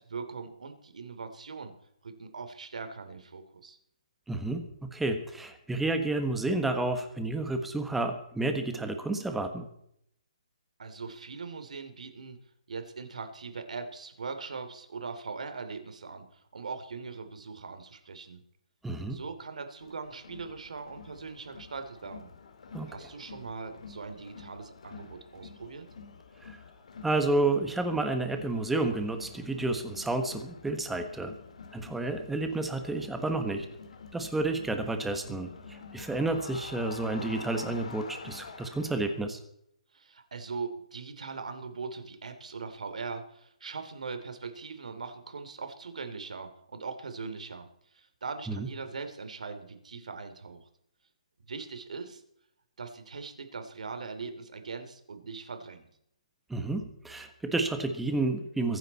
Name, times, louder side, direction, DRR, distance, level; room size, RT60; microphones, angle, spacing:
voice 1, 0.1-1.7 2.0-3.8 10.8-12.4 12.7-18.4 19.1-22.3 22.9-25.9 39.9-47.7 47.9-50.7 51.5-52.2 52.8-55.9, right 4 dB, 80° right, 8 dB, 3.0 m, -40 dB
voice 2, 4.3-4.6 4.9-9.7 18.8-19.2 22.7-22.9 26.4-26.6 27.0-31.3 31.7-33.7 34.1-39.4 48.5-48.7 56.5-58.8, right 2 dB, 5° right, 6 dB, 1.3 m, -30 dB
Crowd, 19.8-39.2, left 5 dB, 65° left, 2.3 m, -48 dB
23.0 x 10.0 x 4.2 m, 0.71 s
hypercardioid pair, 160°, 4 cm